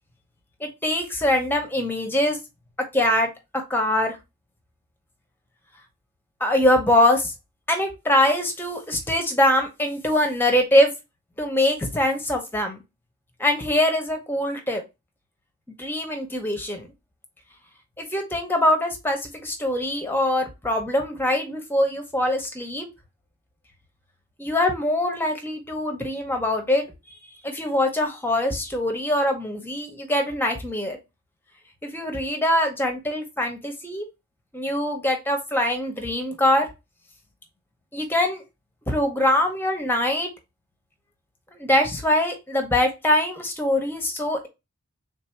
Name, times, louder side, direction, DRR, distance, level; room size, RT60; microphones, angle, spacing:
voice 1, 0.6-2.4 2.9-3.3 3.7-4.2 6.4-7.3 7.7-10.9 11.4-12.8 13.4-14.8 15.8-16.9 18.0-22.9 24.4-26.8 27.4-31.0 31.8-34.1 34.5-36.7 37.9-38.4 38.9-40.3 41.5-44.5, left 1 dB, 10° left, 4 dB, 0.8 m, -23 dB
3.8 x 2.6 x 4.4 m, 0.24 s
head